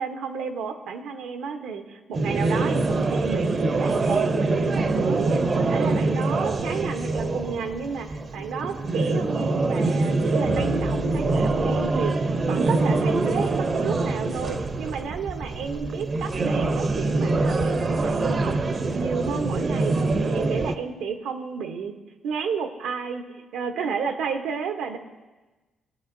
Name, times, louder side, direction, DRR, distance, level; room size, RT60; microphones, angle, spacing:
voice 1, 0.0-18.6 18.9-20.0 20.3-22.0 22.2-25.0, right 6 dB, 85° right, 6 dB, 0.9 m, -32 dB
sound 1, 2.1-20.8, right 3 dB, 40° right, 0.6 m, -24 dB
sound 2, 10.4-14.9, left 5 dB, 60° left, 0.4 m, -40 dB
17.5 x 8.8 x 2.6 m, 1.2 s
cardioid pair, 90°, 0 cm